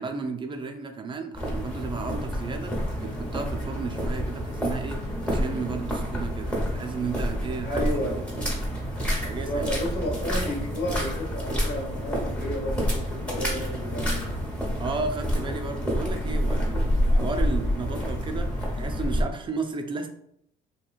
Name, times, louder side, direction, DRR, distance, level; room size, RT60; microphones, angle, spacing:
voice 1, 0.0-2.8 3.0-8.2 9.0-9.7 14.8-20.1, right 4 dB, 30° right, 5 dB, 0.3 m, -34 dB
sound 1, 1.3-19.2, equal, 5° left, 0.9 m, -28 dB
voice 2, 7.7-8.4 9.5-13.0 13.3-14.4, equal, 80° left, -2 dB, 1.1 m, -31 dB
3.0 x 2.7 x 2.3 m, 0.74 s
cardioid pair, 110°, 17 cm